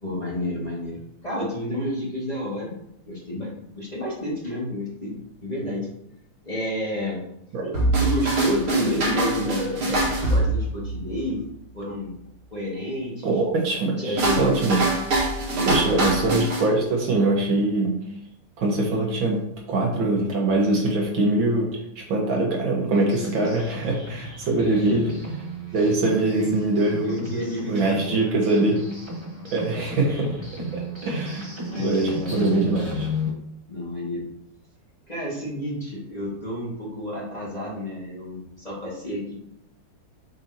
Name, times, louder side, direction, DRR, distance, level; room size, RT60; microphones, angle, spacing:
voice 1, 0.0-2.8 3.0-5.9 6.4-7.2 8.0-11.4 11.7-12.1 12.5-13.3 13.7-14.6 15.5-16.4 24.9-25.2 26.3-26.6 27.0-28.5 31.3-32.6 33.7-34.3 35.1-39.4, equal, 20° left, -6 dB, 2.1 m, -30 dB
sound 1, 7.7-11.2 14.2-16.7, right 2 dB, 80° right, 2.6 m, -24 dB
voice 2, 13.2-14.8 15.7-18.0 18.6-25.1 25.7-27.3 27.7-28.8 29.5-30.4 30.7-31.5 31.8-33.1, right 2 dB, 65° right, -1 dB, 2.0 m, -23 dB
sound 2, 22.9-33.3, equal, 15° right, 1.4 m, -34 dB
7.0 x 6.8 x 2.8 m, 0.75 s
omnidirectional pair, 2.4 m